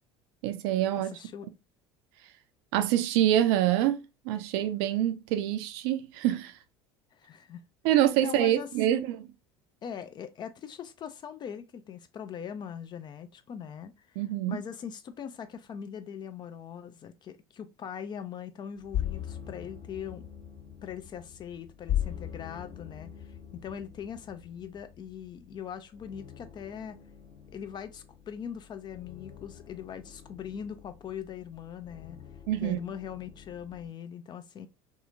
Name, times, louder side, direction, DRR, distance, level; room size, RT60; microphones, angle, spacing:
voice 1, 0.4-1.2 2.7-6.5 7.8-9.2 14.2-14.6 32.5-32.8, right 12 dB, 60° right, 0.4 m, -26 dB
voice 2, 1.0-1.5 7.1-7.6 8.2-9.0 9.8-14.2 14.5-20.2 20.8-27.0 27.5-32.2 32.6-34.7, left 8 dB, 30° left, 0.4 m, -41 dB
Dark Bells, 18.7-33.9, left 11 dB, 55° left, 1.1 m, -40 dB
2.8 x 2.3 x 2.5 m
hypercardioid pair, 70°, 14 cm